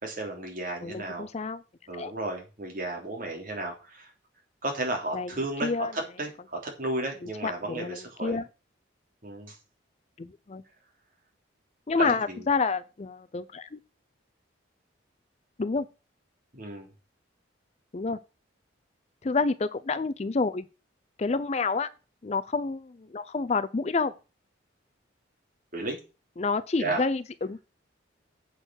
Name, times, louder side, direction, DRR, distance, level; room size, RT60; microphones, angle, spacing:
voice 1, 0.0-1.3 1.9-4.1 4.6-8.4 9.2-9.6 12.0-12.5 16.5-16.9 25.7-26.0 26.8-27.0, right 2 dB, 45° right, 3.3 m, -33 dB
voice 2, 0.8-1.6 1.9-2.1 5.1-5.3 5.6-5.9 7.4-8.4 10.2-10.6 11.9-13.8 15.6-15.9 17.9-18.2 19.2-20.6 21.2-21.9 22.2-24.1 26.4-27.6, left 4 dB, 35° left, 0.4 m, -28 dB
8.1 x 6.6 x 6.3 m
head